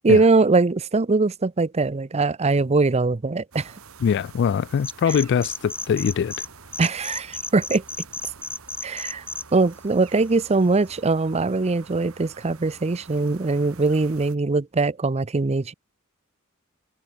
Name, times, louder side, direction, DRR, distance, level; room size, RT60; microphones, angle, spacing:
voice 1, 0.0-3.7 5.1-5.2 6.8-7.8 8.8-9.2 9.5-15.7, right 3 dB, 30° right, 0.6 m, -21 dB
sound 1, 3.5-14.3, right 5 dB, 85° right, 2.2 m, -47 dB
voice 2, 4.0-6.3, left 7 dB, 55° left, 0.3 m, -22 dB
sound 2, 4.8-6.5 6.7-9.4, left 3 dB, 10° left, 1.9 m, -33 dB
head